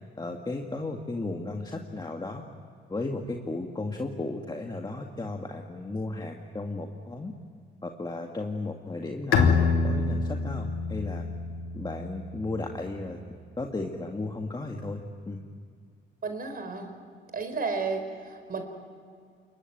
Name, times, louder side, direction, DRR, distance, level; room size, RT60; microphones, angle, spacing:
voice 1, 0.2-2.4 2.9-7.3 7.8-11.2 11.7-13.2 13.6-15.4, left 2 dB, 20° left, 2 dB, 2.0 m, -34 dB
Bowed string instrument, 9.3-12.8, left 5 dB, 85° left, 2.6 m, -26 dB
voice 2, 16.2-16.9 17.3-18.6, right 4 dB, 50° right, 6 dB, 4.5 m, -32 dB
27.5 x 22.5 x 9.2 m, 2.2 s
cardioid pair, 90°, 20 cm